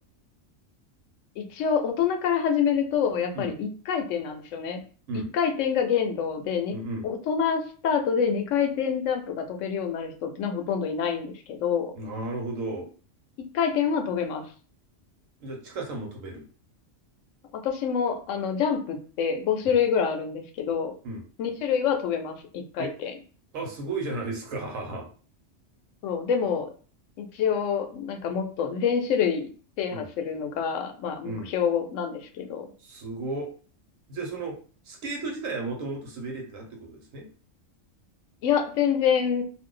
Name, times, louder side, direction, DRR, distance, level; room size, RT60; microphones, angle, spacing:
voice 1, 1.4-4.8 5.3-6.7 7.0-11.9 13.5-14.4 17.5-20.9 21.4-23.1 26.0-26.7 27.2-29.5 29.8-32.7 38.4-39.4, left 7 dB, 75° left, 5 dB, 0.9 m, -26 dB
voice 2, 6.7-7.0 12.0-12.9 15.4-16.4 19.7-19.8 21.0-21.2 22.8-22.9 23.5-25.1 29.9-30.1 31.2-31.5 32.8-33.5 34.1-34.6 34.8-37.3, right 2 dB, 85° right, 0 dB, 1.2 m, -34 dB
2.5 x 2.3 x 3.7 m, 0.40 s
omnidirectional pair, 1.3 m